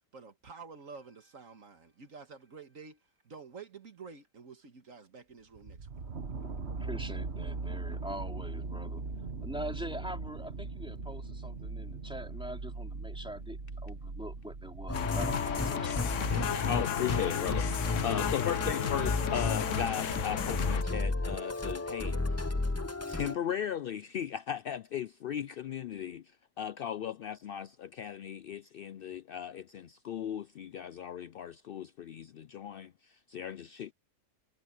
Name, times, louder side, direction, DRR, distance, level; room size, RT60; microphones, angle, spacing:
voice 1, 0.1-3.0 3.2-6.0, right 5 dB, 65° right, 2.0 m, -49 dB
sound 1, 5.5-17.9 18.5-18.6, right 3 dB, 50° right, 1.8 m, -40 dB
voice 2, 6.8-9.0 9.4-16.2, equal, 5° right, 3.6 m, -43 dB
sound 2, 14.9-20.8, left 9 dB, 60° left, 1.2 m, -33 dB
Musical instrument, 14.9-23.4, left 2 dB, 15° left, 0.5 m, -33 dB
voice 3, 16.7-17.7 18.0-22.4 23.1-26.2 26.6-33.9, left 9 dB, 80° left, 0.5 m, -37 dB
omnidirectional pair, 1.5 m